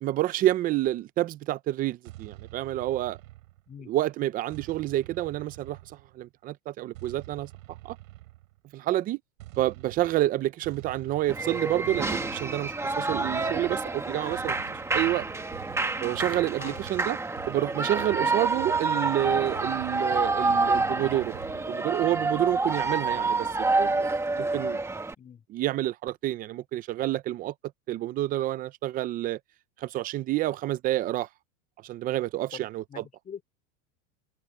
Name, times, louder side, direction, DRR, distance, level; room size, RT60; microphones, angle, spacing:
voice 1, 0.0-3.2 3.9-5.8 6.2-7.5 7.8-8.0 8.7-9.2 9.6-14.6 14.9-15.3 16.0-17.2 17.5-23.9 24.4-24.8 25.5-27.5 27.9-29.4 29.8-31.3 31.8-32.8, right 14 dB, 20° right, 0.4 m, -28 dB
sound 1, 2.0-3.8 4.5-6.2 6.9-8.6 9.4-21.7, right 17 dB, 75° right, 7.7 m, -47 dB
Shout / Cheering, 11.3-25.1, right 3 dB, 5° right, 1.6 m, -28 dB
voice 2, 32.5-33.4, left 7 dB, 20° left, 4.0 m, -44 dB
supercardioid pair, 150°, 40 cm